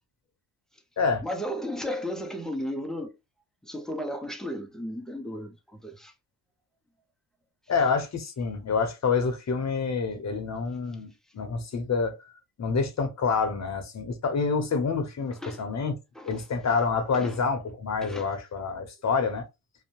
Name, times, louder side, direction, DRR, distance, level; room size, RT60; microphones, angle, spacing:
voice 1, 1.2-3.2 3.6-6.1 15.3-15.7 16.1-16.4 17.1-17.4 18.0-18.3, equal, ahead, 0.5 m, -34 dB
voice 2, 7.7-12.1 12.6-15.9 16.2-19.4, left 5 dB, 40° left, 0.8 m, -27 dB
2.6 x 2.1 x 2.9 m
cardioid pair, 90°, 44 cm